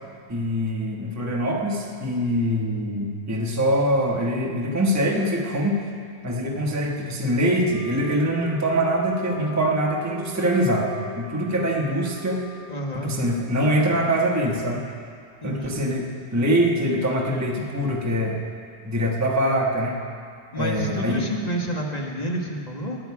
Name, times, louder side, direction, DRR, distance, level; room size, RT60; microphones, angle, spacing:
voice 1, 0.3-5.8 6.2-10.9 11.2-12.4 12.9-14.8 15.4-18.4 18.8-20.0 20.5-21.2, equal, 10° right, -2 dB, 1.0 m, -23 dB
Wind instrument woodwind instrument, 7.7-13.3, equal, 40° left, 4.0 m, -41 dB
voice 2, 12.7-13.2 15.4-15.8 20.5-23.0, equal, 25° left, 0 dB, 1.2 m, -29 dB
19.0 x 9.0 x 4.7 m, 2.2 s
omnidirectional pair, 1.8 m